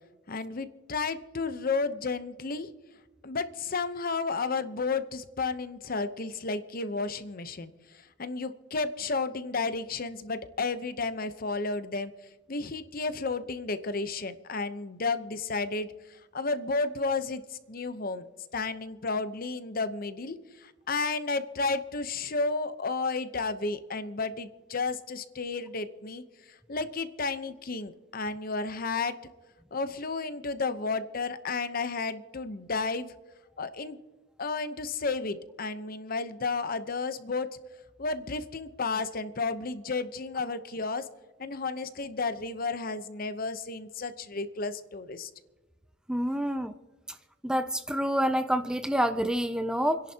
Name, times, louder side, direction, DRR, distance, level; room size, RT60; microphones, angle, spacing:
voice 1, 0.3-2.7 3.2-12.1 12.5-18.3 18.5-29.2 29.7-33.1 33.6-34.0 34.4-37.5 38.0-41.1 41.4-45.3, left 4 dB, 45° left, 11 dB, 0.8 m, -32 dB
voice 2, 46.1-46.7 47.4-50.0, equal, 5° right, 9 dB, 0.4 m, -27 dB
28.5 x 11.0 x 2.9 m, 1.2 s
head